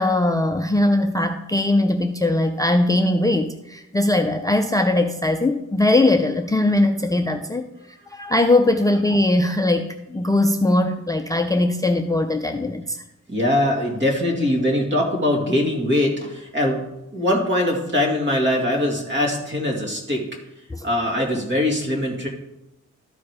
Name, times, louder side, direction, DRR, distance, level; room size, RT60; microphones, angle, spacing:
voice 1, 0.0-7.7 8.1-13.0 20.7-20.8, left 2 dB, 10° left, 4 dB, 0.4 m, -20 dB
voice 2, 8.0-8.3 13.3-16.8 17.1-20.2 20.8-22.3, left 1 dB, 40° right, 0 dB, 2.4 m, -22 dB
13.0 x 5.1 x 4.8 m, 0.89 s
wide cardioid pair, 130°, 29 cm